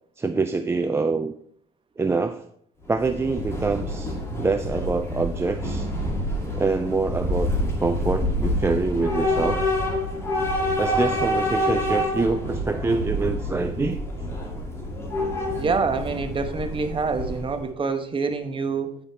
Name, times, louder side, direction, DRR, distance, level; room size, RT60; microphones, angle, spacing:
voice 1, 0.2-1.3 2.0-2.4 2.9-5.9 6.6-7.5 7.8-9.7 10.8-14.0, right 3 dB, 15° right, 8 dB, 0.4 m, -25 dB
Train / Subway metro underground, 2.8-17.7, left 1 dB, 15° left, 2.2 m, -27 dB
voice 2, 15.6-19.0, right 4 dB, 30° right, 7 dB, 1.0 m, -26 dB
9.2 x 5.0 x 4.2 m, 0.65 s
cardioid pair, 110°, 17 cm